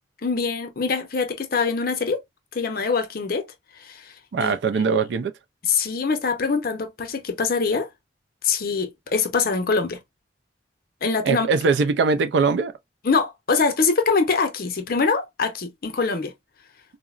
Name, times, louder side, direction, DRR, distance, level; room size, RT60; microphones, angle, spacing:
voice 1, 0.2-2.2 2.5-3.4 3.8-4.1 4.4-4.5 5.7-7.9 8.4-10.0 11.0-11.5 13.0-16.3, left 4 dB, 50° left, 0.6 m, -23 dB
voice 2, 4.3-5.3 11.2-12.7, right 4 dB, 70° right, 0.4 m, -21 dB
3.8 x 2.0 x 2.3 m
head